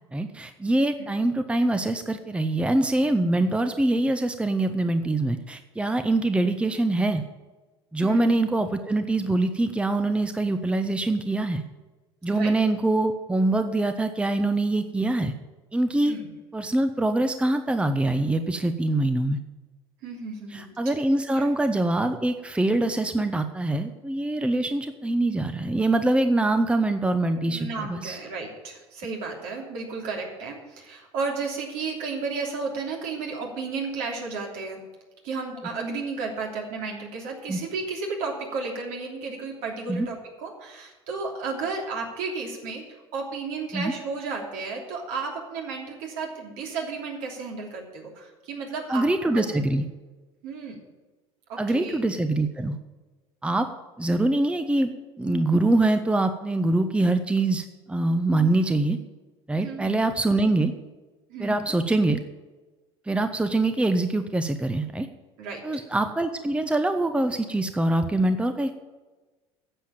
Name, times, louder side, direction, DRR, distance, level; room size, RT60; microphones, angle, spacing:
voice 1, 0.1-7.2 7.9-11.6 12.2-15.3 15.7-16.2 16.5-19.4 20.5-28.2 37.5-37.6 39.9-40.1 43.7-43.9 48.9-49.8 51.6-52.8 53.4-53.7 54.0-54.9 55.2-59.0 59.5-60.7 61.4-62.2 63.1-65.1 65.6-68.7, right 2 dB, 10° right, 9 dB, 0.9 m, -24 dB
voice 2, 16.0-16.3 20.0-21.0 21.3-21.5 27.5-34.8 35.2-49.1 49.3-49.4 50.4-50.8 51.5-52.0 59.6-60.0 61.3-61.6 65.4-65.6, right 4 dB, 65° right, 1 dB, 3.0 m, -33 dB
10.0 x 7.5 x 8.8 m, 1.2 s
hypercardioid pair, 75°, 15 cm